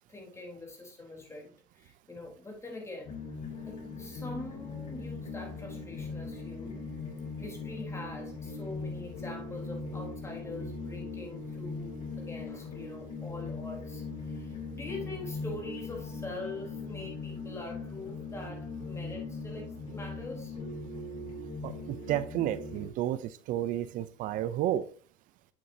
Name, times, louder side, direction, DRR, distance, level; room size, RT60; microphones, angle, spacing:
voice 1, 0.1-3.2 3.7-6.8 7.4-20.5, left 2 dB, 20° left, 3.8 m, -44 dB
sound 1, 3.0-22.9, left 3 dB, 45° left, 3.3 m, -40 dB
voice 2, 21.6-24.8, right 12 dB, 70° right, 0.6 m, -31 dB
8.5 x 7.4 x 2.8 m
supercardioid pair, 100°, 14 cm